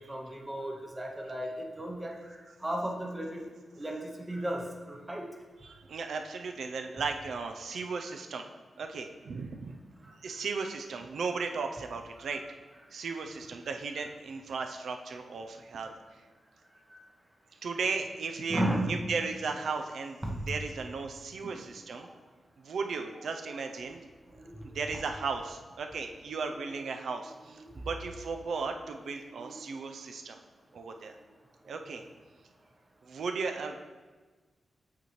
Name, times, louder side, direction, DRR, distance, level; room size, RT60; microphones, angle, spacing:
voice 1, 0.0-2.4 2.6-3.5 3.8-5.3 18.5-19.0 20.2-20.5 21.4-21.6 22.0-22.1 24.4-24.7 29.3-29.6, right 1 dB, 15° right, 1 dB, 0.7 m, -34 dB
voice 2, 5.6-8.5 8.8-9.8 10.2-12.4 12.9-15.9 17.6-18.6 18.9-22.1 22.6-24.0 24.7-30.4 30.7-31.2 31.7-32.0 33.0-33.8, right 4 dB, 75° right, 5 dB, 0.5 m, -36 dB
8.1 x 4.3 x 3.1 m, 1.3 s
wide cardioid pair, 160°, 0 cm